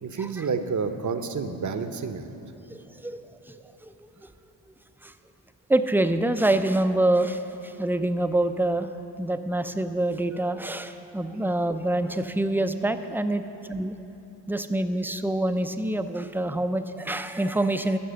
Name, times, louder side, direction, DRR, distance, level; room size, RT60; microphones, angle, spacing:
voice 1, 0.0-2.3, right 5 dB, 40° right, 8 dB, 0.8 m, -29 dB
voice 2, 2.7-3.6 3.8-4.1 5.0-5.1 5.7-8.9 9.2-13.9 14.5-18.0, right 1 dB, 5° right, 9 dB, 0.4 m, -26 dB
13.5 x 5.5 x 6.8 m, 3.0 s
cardioid pair, 55°, 47 cm